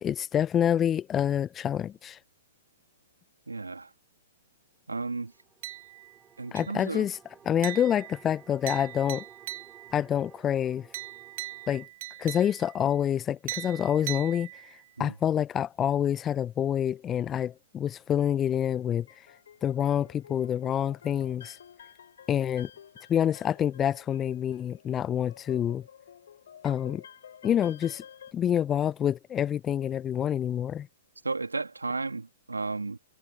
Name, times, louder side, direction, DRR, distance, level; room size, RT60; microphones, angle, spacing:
voice 1, 0.0-2.2 6.5-7.2 7.5-9.2 9.9-10.9 11.7-11.9 12.2-14.5 15.0-19.1 19.6-21.6 22.3-22.7 23.1-25.8 26.6-27.0 27.4-28.0 28.3-30.9, left 9 dB, 20° left, 0.8 m, -27 dB
voice 2, 3.5-3.9 4.9-5.3 6.4-7.1 15.0-15.2 31.2-33.0, right 3 dB, 85° right, 3.0 m, -33 dB
sound 1, 5.1-11.9, right 7 dB, 15° right, 3.5 m, -56 dB
sound 2, 5.6-6.2 6.6-7.0 7.6-10.0 10.9-12.8 13.5-14.9, right 18 dB, 45° right, 0.5 m, -40 dB
sound 3, 18.8-28.3, left 8 dB, 65° left, 4.5 m, -51 dB
figure-of-eight pair, 115°, 0 cm